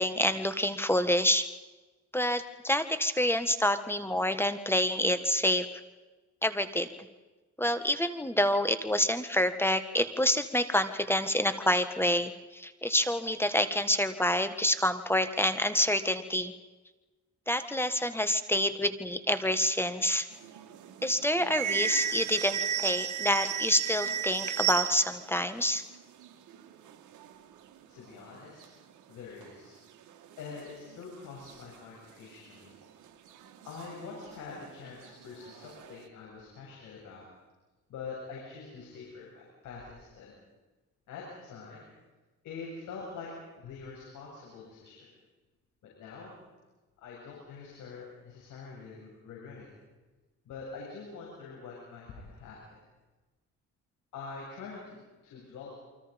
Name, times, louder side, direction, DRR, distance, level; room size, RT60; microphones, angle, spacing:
voice 1, 0.0-1.5 2.1-5.7 6.4-6.9 7.6-16.5 17.5-20.3 21.0-25.8, left 1 dB, 10° left, 10 dB, 1.7 m, -27 dB
sound 1, 20.3-25.3 25.6-25.7 25.9-27.3 27.8-27.9 28.1-28.6 29.4-29.5 30.1-31.0 31.5-31.6 32.7-32.8 33.3-34.7 35.0-36.0, right 9 dB, 80° right, 2.2 m, -34 dB
voice 2, 27.9-28.7 29.1-29.8 30.4-32.7 33.6-37.3 37.9-40.4 41.1-41.9 42.4-45.1 45.8-46.3 47.0-49.7 50.5-52.6 54.1-55.7, left 4 dB, 85° left, -3 dB, 7.7 m, -45 dB
28.5 x 24.5 x 5.4 m, 1.2 s
cardioid pair, 90°, 30 cm